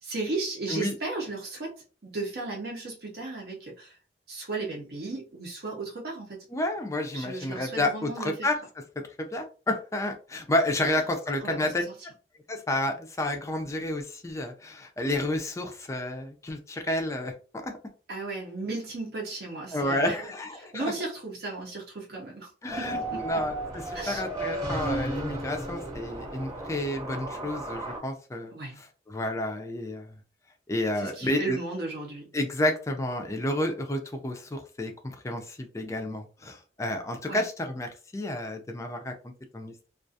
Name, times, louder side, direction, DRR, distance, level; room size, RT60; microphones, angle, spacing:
voice 1, 0.0-1.8 2.0-4.0 4.3-6.5 7.1-8.5 10.8-11.0 11.4-11.8 18.1-20.2 20.6-23.4 23.9-24.2 28.5-28.8 30.9-32.3 37.3-37.4, right 3 dB, 60° right, -2 dB, 0.6 m, -35 dB
voice 2, 6.5-8.6 9.2-11.8 12.5-17.3 17.6-17.8 19.7-20.9 22.6-30.2 30.7-31.6 32.3-39.9, left 1 dB, 15° left, 5 dB, 0.4 m, -30 dB
sound 1, 22.7-28.0, right 1 dB, 20° right, 0.9 m, -34 dB
2.4 x 2.3 x 2.6 m, 0.36 s
head